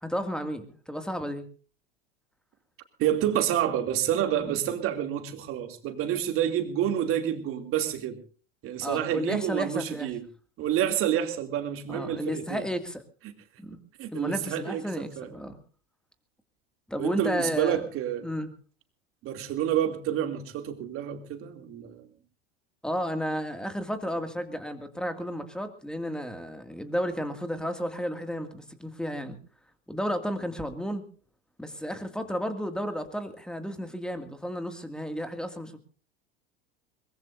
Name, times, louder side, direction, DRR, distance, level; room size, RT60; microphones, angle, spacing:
voice 1, 0.0-1.4 4.4-4.6 8.8-10.1 11.9-13.0 13.6-13.8 14.1-15.6 16.9-17.8 18.2-18.5 22.8-29.4 29.9-31.0 31.6-35.8, equal, 5° left, 8 dB, 2.2 m, -32 dB
voice 2, 3.0-8.2 8.6-10.2 10.6-12.6 14.0-15.3 17.0-18.3 19.2-22.1, right 10 dB, 45° right, 6 dB, 2.7 m, -28 dB
22.5 x 20.5 x 2.6 m, 0.39 s
hypercardioid pair, 90°, 31 cm